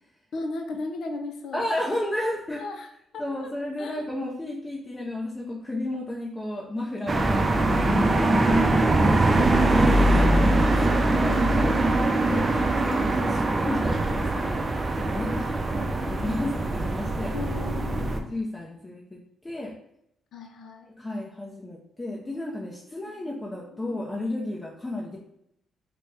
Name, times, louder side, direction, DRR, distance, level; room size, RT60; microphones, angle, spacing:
voice 1, 0.3-1.7 2.6-2.9 3.1-3.5 3.8-4.0 7.2-8.3 8.9-9.4 15.3-15.5 17.3-18.3 20.3-20.9 23.1-23.9, left 3 dB, 70° left, 4 dB, 0.5 m, -37 dB
voice 2, 1.5-2.6 3.2-9.0 9.3-10.4 10.7-14.7 14.9-17.3 18.0-19.7 20.9-25.2, left 1 dB, 20° left, -3 dB, 0.6 m, -33 dB
sound 1, 7.1-18.2, right 2 dB, 30° right, 0.5 m, -22 dB
4.2 x 2.2 x 3.3 m, 0.76 s
cardioid pair, 80°, 0 cm